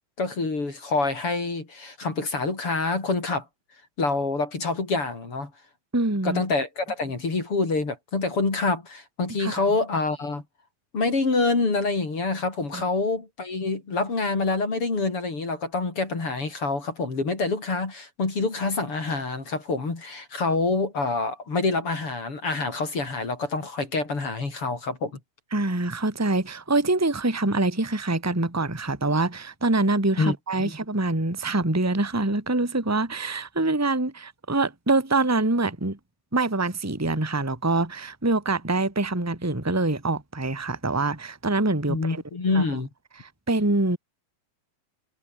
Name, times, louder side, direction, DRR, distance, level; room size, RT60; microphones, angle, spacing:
voice 1, 0.2-3.5 4.0-5.5 6.2-10.4 10.9-25.1 30.2-30.7 41.9-42.9, left 3 dB, 35° left, 5.2 m, -26 dB
voice 2, 5.9-6.4 9.4-9.6 12.7-12.8 25.5-36.0 36.3-42.2 42.5-42.6 43.5-44.0, right 2 dB, 5° right, 2.9 m, -25 dB
omnidirectional pair, 4.5 m